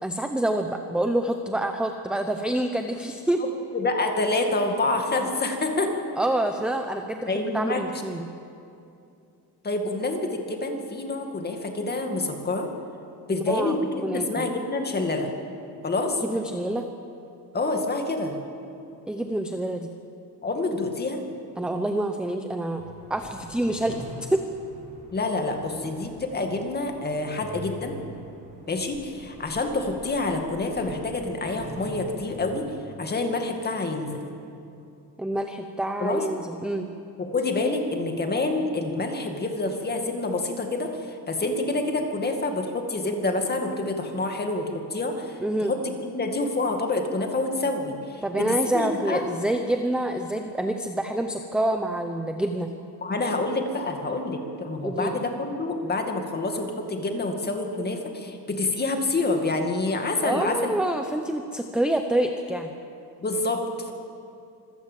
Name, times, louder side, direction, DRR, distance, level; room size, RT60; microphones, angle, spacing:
voice 1, 0.0-3.4 5.8-8.3 13.3-13.8 14.0-14.5 16.2-16.9 19.1-19.9 21.6-22.8 23.1-24.4 35.2-36.9 45.4-45.7 48.2-52.7 54.8-55.1 60.2-62.7, right 1 dB, ahead, 5 dB, 0.7 m, -27 dB
voice 2, 3.7-5.9 7.3-7.8 9.6-12.7 13.3-15.3 15.8-16.2 17.5-18.4 20.4-21.2 25.1-28.0 28.7-32.6 33.0-34.2 36.0-36.3 37.2-49.2 53.0-60.7 63.2-63.9, left 2 dB, 25° left, 4 dB, 2.2 m, -27 dB
sound 1, 22.8-32.5, equal, 20° right, 4.0 m, -44 dB
25.5 x 16.5 x 7.6 m, 2.6 s
cardioid pair, 170°, 40 cm